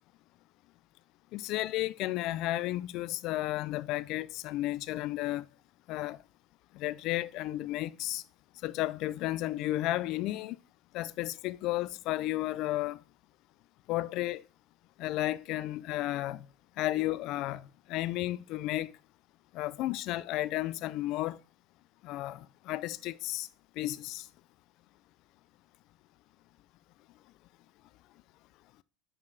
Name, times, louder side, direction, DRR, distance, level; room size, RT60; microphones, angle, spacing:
voice 1, 1.3-5.5 5.9-6.2 6.8-8.2 8.6-10.6 10.9-13.0 13.9-14.4 15.0-16.4 16.8-18.9 19.5-21.4 22.0-23.5 23.8-24.3, left 16 dB, 55° left, 0.4 m, -33 dB
5.4 x 4.8 x 4.7 m
supercardioid pair, 135°, 0 cm